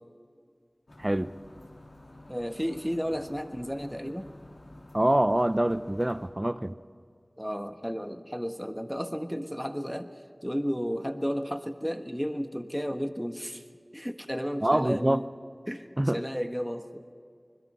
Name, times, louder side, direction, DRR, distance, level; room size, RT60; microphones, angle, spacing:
sound 1, 0.9-6.3, left 1 dB, 85° left, 3.7 m, -50 dB
voice 1, 1.0-1.3 4.9-6.8 14.6-15.2 16.0-16.2, right 1 dB, 25° right, 13 dB, 0.7 m, -25 dB
voice 2, 2.3-4.3 7.4-13.6 13.9-15.3 15.7-17.0, equal, ahead, 7 dB, 1.3 m, -33 dB
26.0 x 21.0 x 5.5 m, 2.2 s
wide cardioid pair, 45°, 0 cm